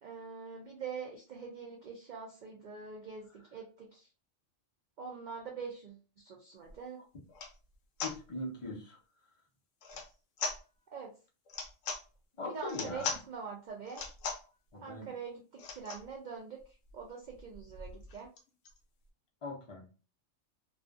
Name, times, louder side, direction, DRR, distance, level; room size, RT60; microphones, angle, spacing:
voice 1, 0.0-4.1 5.0-7.0 10.9-11.1 12.5-14.0 14.8-18.3, right 5 dB, 80° right, 0 dB, 0.4 m, -44 dB
sound 1, 6.7-6.8 7.3-7.6 8.0-8.2 9.8-10.1 10.4-10.6 11.5-12.0 12.7-13.2 13.9-14.5 15.6-16.1 16.6-16.7 16.9-17.0 17.3-18.8, left 4 dB, 70° left, 0.9 m, -39 dB
voice 2, 8.0-9.0 12.4-13.2 14.7-15.1 19.4-19.9, left 2 dB, 40° left, -1 dB, 0.5 m, -41 dB
2.5 x 2.3 x 2.4 m, 0.34 s
omnidirectional pair, 1.4 m